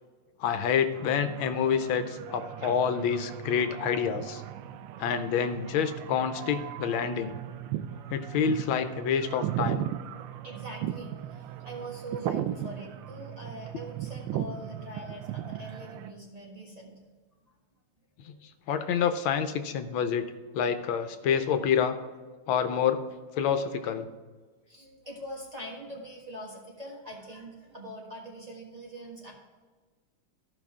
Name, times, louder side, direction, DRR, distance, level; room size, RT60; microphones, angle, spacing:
voice 1, 0.4-4.4 5.0-7.3 8.1-9.8 18.3-18.4 18.7-22.0 22.5-23.0 23.4-24.1, left 7 dB, 90° left, 9 dB, 1.5 m, -27 dB
sound 1, 0.9-16.1, right 11 dB, 75° right, 1.3 m, -37 dB
voice 2, 7.8-8.8 10.4-11.2 11.6-17.0 18.2-18.3 24.7-29.3, right 1 dB, 20° right, -3 dB, 1.3 m, -43 dB
14.0 x 5.6 x 3.6 m, 1.4 s
omnidirectional pair, 2.2 m